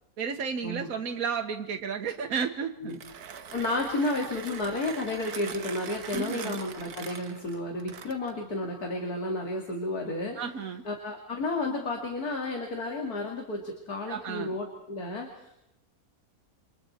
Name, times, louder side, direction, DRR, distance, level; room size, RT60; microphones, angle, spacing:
voice 1, 0.2-3.0 6.1-6.6 10.3-10.8 14.1-14.5, right 6 dB, 65° right, 3 dB, 1.6 m, -32 dB
Mechanisms, 2.8-8.4, right 7 dB, 85° right, 1.6 m, -42 dB
voice 2, 3.3-10.4 10.8-15.6, left 2 dB, 85° left, 1 dB, 3.0 m, -32 dB
28.0 x 25.5 x 4.4 m, 0.78 s
omnidirectional pair, 1.6 m